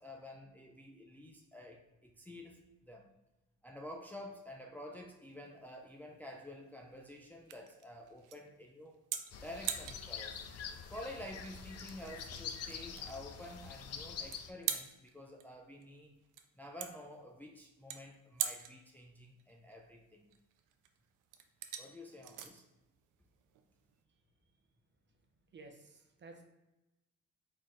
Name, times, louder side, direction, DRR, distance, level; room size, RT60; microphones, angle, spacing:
voice 1, 0.0-3.1 3.6-9.0 9.4-10.4 10.9-16.2 16.6-20.3 21.8-22.6, left 1 dB, 5° left, 1 dB, 0.5 m, -50 dB
sound 1, 5.2-24.0, right 10 dB, 85° right, 0.5 m, -45 dB
sound 2, 9.3-14.5, left 7 dB, 55° left, 0.5 m, -45 dB
voice 2, 25.5-26.4, right 3 dB, 35° right, 4 dB, 0.8 m, -54 dB
4.1 x 4.0 x 3.1 m, 0.99 s
cardioid pair, 90°, 30 cm